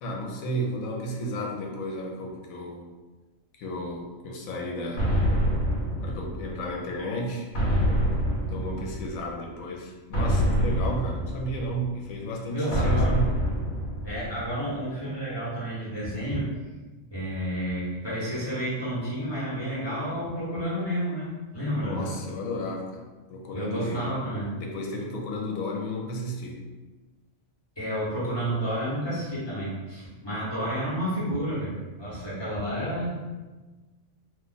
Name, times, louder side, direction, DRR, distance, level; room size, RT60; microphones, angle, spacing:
voice 1, 0.0-2.9 3.6-5.1 6.0-7.5 8.5-13.3 21.8-23.0 23.3-24.1 24.6-26.6, equal, 80° left, 0 dB, 1.0 m, -33 dB
sound 1, 5.0-6.7 7.5-9.3 10.1-11.9 12.7-14.5, equal, 55° left, 1.0 m, -26 dB
voice 2, 12.5-13.2 13.9-16.5 17.1-22.2 23.5-24.6 27.8-33.2, equal, 20° left, -10 dB, 1.0 m, -30 dB
2.4 x 2.3 x 3.8 m, 1.2 s
omnidirectional pair, 1.4 m